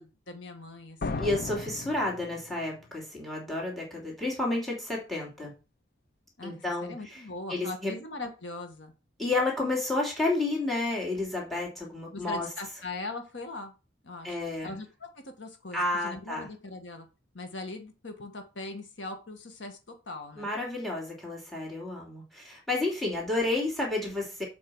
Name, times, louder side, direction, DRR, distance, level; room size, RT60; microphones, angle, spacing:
voice 1, 0.0-1.4 6.4-8.9 12.1-13.7 14.0-14.4 14.6-17.1 17.3-19.8 20.1-20.5, left 2 dB, 90° left, 6 dB, 1.7 m, -40 dB
sound 1, 1.0-2.8, left 3 dB, 55° left, 0.6 m, -36 dB
voice 2, 1.2-5.5 6.4-7.2 7.5-7.9 9.2-12.5 14.2-14.7 15.7-16.5 20.4-24.4, left 2 dB, ahead, -1 dB, 2.9 m, -31 dB
7.5 x 4.9 x 6.2 m, 0.30 s
head